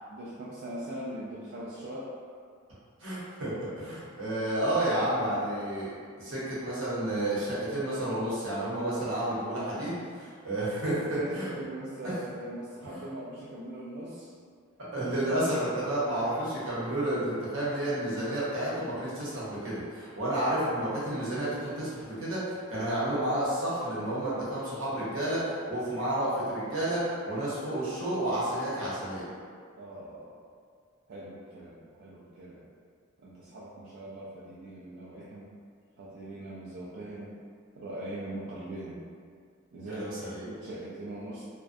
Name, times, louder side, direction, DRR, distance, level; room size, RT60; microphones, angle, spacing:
voice 1, 0.1-2.1 4.7-4.9 11.1-14.3 29.8-30.4 31.1-32.7 33.2-35.5 36.0-37.4 37.7-39.0 39.7-41.4, right 1 dB, 60° right, -8 dB, 0.3 m, -41 dB
voice 2, 3.0-11.5 12.8-13.0 14.8-25.4 25.7-29.3 39.9-40.4, right 1 dB, 80° right, -9 dB, 0.9 m, -31 dB
2.4 x 2.1 x 2.5 m, 2.1 s
head